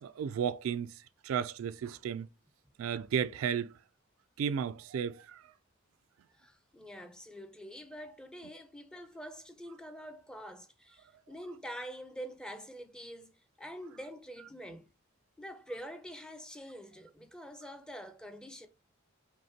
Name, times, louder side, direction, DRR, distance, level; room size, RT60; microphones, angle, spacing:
voice 1, 0.0-2.3 2.8-3.8 4.4-5.5, right 8 dB, 85° right, 0.3 m, -34 dB
voice 2, 6.3-14.9 15.4-18.7, equal, 5° left, 0.4 m, -46 dB
5.2 x 2.1 x 2.7 m
head